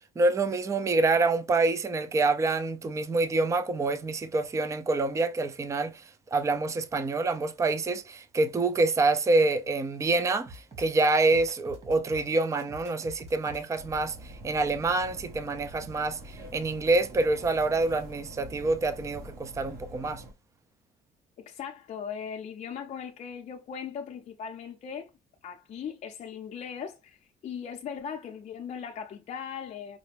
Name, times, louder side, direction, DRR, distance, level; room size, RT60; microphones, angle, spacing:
voice 1, 0.2-20.2, right 3 dB, 20° right, 0.4 m, -26 dB
sound 1, 10.5-10.9 11.2-12.3 12.6-13.6, equal, 40° right, 1.8 m, -46 dB
sound 2, 13.8-20.3, equal, 60° right, 1.3 m, -45 dB
voice 2, 21.4-25.1 25.4-30.0, left 7 dB, 45° left, 0.5 m, -39 dB
4.9 x 2.1 x 3.3 m
cardioid pair, 110°, 17 cm